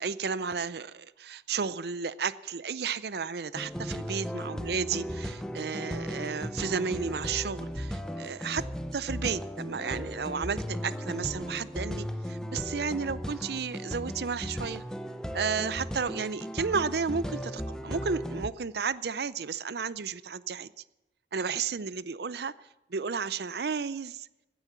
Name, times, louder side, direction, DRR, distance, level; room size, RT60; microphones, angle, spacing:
voice 1, 0.0-8.6 8.9-14.8 15.3-20.7 21.3-22.5 22.9-24.3, right 5 dB, 70° right, 17 dB, 0.6 m, -33 dB
sound 1, 3.5-18.5, equal, 5° left, 0.7 m, -36 dB
16.5 x 9.7 x 6.9 m, 0.94 s
head